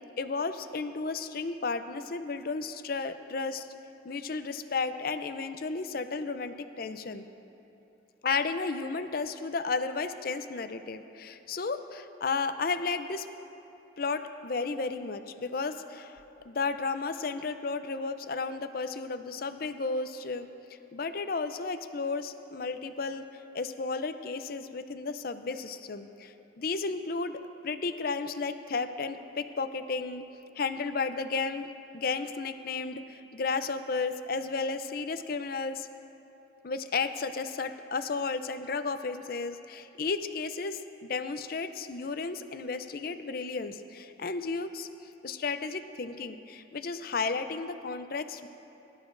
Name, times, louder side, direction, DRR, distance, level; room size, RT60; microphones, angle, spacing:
voice 1, 0.2-3.7 4.0-7.2 8.2-13.3 14.0-20.5 20.9-23.2 23.5-30.2 30.6-35.9 36.6-44.9 45.2-48.5, left 4 dB, 50° left, 10 dB, 0.5 m, -33 dB
22.0 x 12.5 x 2.6 m, 2.9 s
head